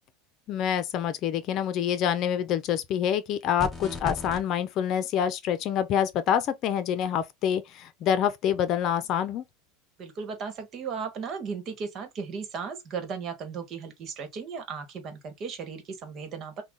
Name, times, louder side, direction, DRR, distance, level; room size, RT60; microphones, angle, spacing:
voice 1, 0.5-9.4, left 9 dB, 45° left, 0.7 m, -26 dB
sound 1, 3.6-4.4, left 3 dB, 5° left, 3.2 m, -34 dB
voice 2, 10.0-16.6, right 5 dB, 40° right, 1.5 m, -36 dB
6.0 x 2.4 x 3.7 m
supercardioid pair, 120°, 0 cm